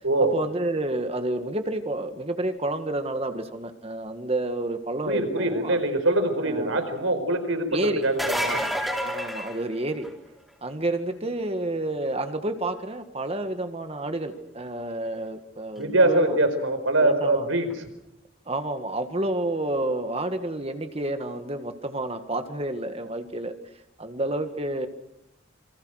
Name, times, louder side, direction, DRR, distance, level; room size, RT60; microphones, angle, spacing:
voice 1, 0.2-5.8 6.4-6.8 7.7-8.0 8.3-8.7 9.0-10.1 10.6-16.4 17.0-17.5 18.5-23.5 24.0-24.9, right 2 dB, 30° right, 8 dB, 1.7 m, -30 dB
voice 2, 5.0-8.5 15.8-17.9, right 2 dB, 90° right, 8 dB, 4.8 m, -23 dB
sound 1, 8.0-10.3 15.8-15.9 17.7-17.8, equal, ahead, 4.1 m, -29 dB
27.5 x 24.5 x 6.5 m, 0.83 s
head